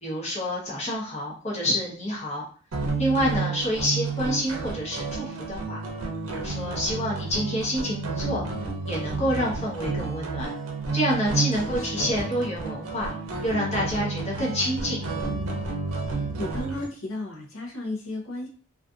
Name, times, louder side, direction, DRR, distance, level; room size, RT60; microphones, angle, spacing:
voice 1, 0.0-2.4 3.0-5.8 6.3-8.4 8.8-10.5 10.9-13.1 13.4-15.0, equal, 30° left, -4 dB, 0.8 m, -28 dB
sound 1, 2.7-16.8, right 3 dB, 75° right, 0.6 m, -31 dB
voice 2, 11.7-12.0 16.4-18.5, left 2 dB, 75° left, -2 dB, 0.7 m, -34 dB
2.5 x 2.4 x 2.4 m, 0.41 s
head